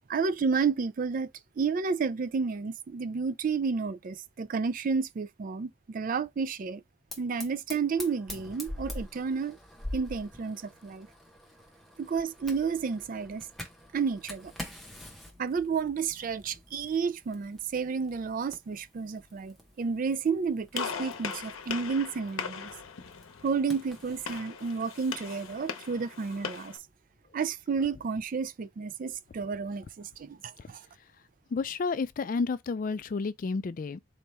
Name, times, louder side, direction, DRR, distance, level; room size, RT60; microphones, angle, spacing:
voice 1, 0.1-1.3 1.6-6.8 7.2-9.6 9.9-11.1 12.0-13.5 13.9-14.5 15.4-22.7 23.4-26.8 27.3-30.8, right 5 dB, 40° right, 0.3 m, -31 dB
Fire, 7.1-24.4, left 1 dB, ahead, 0.9 m, -46 dB
Gunshot gunfire, 20.7-26.8, left 6 dB, 85° left, 0.7 m, -39 dB
voice 2, 31.5-34.0, left 4 dB, 40° left, 0.3 m, -31 dB
4.1 x 3.0 x 3.4 m
head